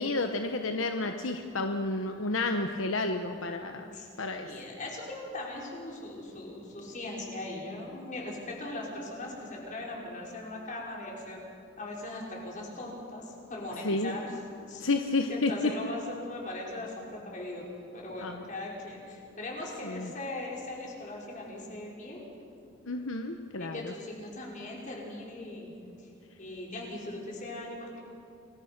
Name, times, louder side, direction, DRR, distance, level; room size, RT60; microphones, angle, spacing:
voice 1, 0.0-3.9 4.2-4.5 13.8-14.1 14.8-15.7 18.2-18.4 19.8-20.1 22.8-23.8, left 2 dB, 75° left, 5 dB, 1.1 m, -30 dB
voice 2, 4.4-11.5 11.8-14.3 14.7-14.9 15.3-17.7 17.9-22.3 23.6-25.7 26.0-26.1 26.4-28.0, left 2 dB, 40° left, -2 dB, 5.5 m, -39 dB
28.5 x 21.5 x 6.1 m, 2.5 s
head